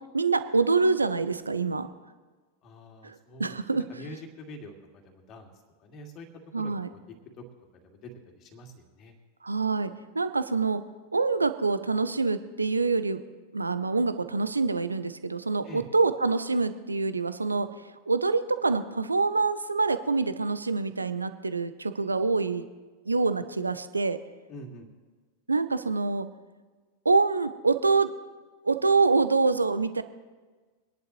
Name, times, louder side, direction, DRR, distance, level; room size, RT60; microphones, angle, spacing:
voice 1, 0.1-1.9 3.0-3.8 6.5-6.9 9.4-10.8 11.1-13.2 13.5-17.7 18.1-22.7 23.1-24.2 25.5-26.3 27.0-28.1 28.6-30.0, right 4 dB, 80° right, 12 dB, 0.6 m, -26 dB
voice 2, 2.6-5.5 5.8-6.3 6.6-7.0 7.4-7.5 7.7-9.2 15.6-15.9 24.5-24.9, left 1 dB, 35° left, 3 dB, 2.2 m, -45 dB
23.0 x 10.5 x 3.1 m, 1.4 s
figure-of-eight pair, 90°, 0 cm